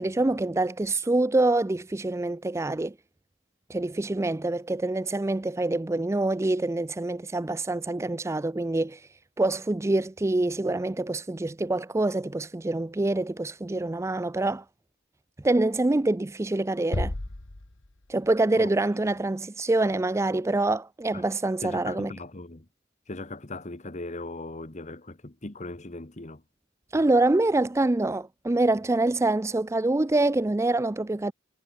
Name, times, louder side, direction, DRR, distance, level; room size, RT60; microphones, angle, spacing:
voice 1, 0.0-2.9 3.7-9.1 9.4-14.6 15.4-17.1 18.1-22.1 26.9-31.3, right 2 dB, 15° right, 0.4 m, -25 dB
sound 1, 16.9-18.5, left 1 dB, 65° left, 1.7 m, -33 dB
voice 2, 21.6-22.7 23.1-26.4, left 2 dB, 35° left, 1.5 m, -38 dB
head